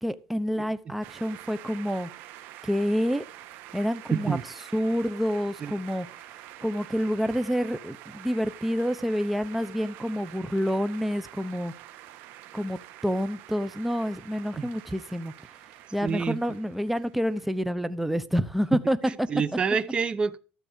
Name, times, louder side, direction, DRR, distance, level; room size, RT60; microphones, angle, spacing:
voice 1, 0.0-2.1 2.6-3.2 3.7-4.4 4.7-6.1 6.6-11.7 12.5-15.3 15.9-19.3, equal, 5° right, 0.9 m, -28 dB
sound 1, 1.0-17.7, right 14 dB, 75° right, 1.4 m, -47 dB
voice 2, 4.1-4.4 5.6-5.7 14.6-14.7 16.0-16.4 19.0-20.4, right 6 dB, 30° right, 0.9 m, -27 dB
13.0 x 7.8 x 5.2 m
cardioid pair, 130°, 3 cm